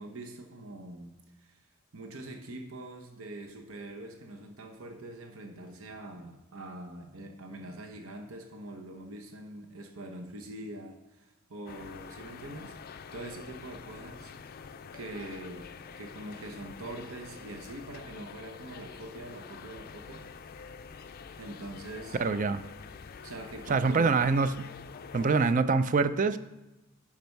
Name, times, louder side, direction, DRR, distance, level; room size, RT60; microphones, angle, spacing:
voice 1, 0.0-1.6 1.9-14.3 14.9-20.3 21.4-22.2 23.2-24.2, right 1 dB, 70° right, 4 dB, 1.0 m, -44 dB
sound 1, 11.7-25.6, left 6 dB, 45° left, 0.4 m, -46 dB
voice 2, 22.2-22.6 23.7-24.5 25.1-26.4, right 4 dB, 35° right, 12 dB, 0.4 m, -25 dB
10.5 x 5.1 x 4.6 m, 1.0 s
head